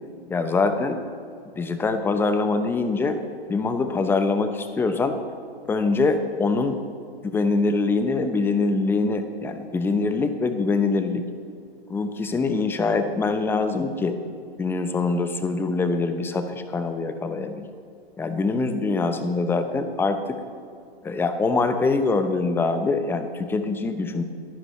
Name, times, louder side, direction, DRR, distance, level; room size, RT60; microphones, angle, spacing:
voice 1, 0.3-1.0 1.5-3.2 3.5-5.2 5.7-6.8 7.3-11.2 11.9-14.2 14.6-17.7 18.2-20.4 21.0-24.2, left 3 dB, 5° left, 8 dB, 0.7 m, -24 dB
24.0 x 11.0 x 3.2 m, 2.3 s
hypercardioid pair, 125°, 32 cm